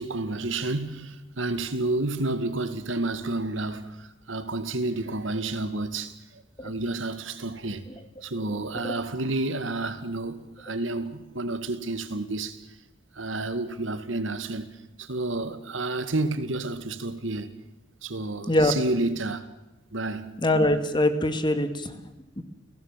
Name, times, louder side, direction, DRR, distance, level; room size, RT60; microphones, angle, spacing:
voice 1, 0.0-7.9 8.2-12.6 13.1-17.6 18.0-19.5 19.9-20.4, right 2 dB, 80° right, 2.0 m, -30 dB
voice 2, 20.4-21.9 22.4-22.5, left 1 dB, 25° left, 1.8 m, -23 dB
30.0 x 17.0 x 7.5 m
head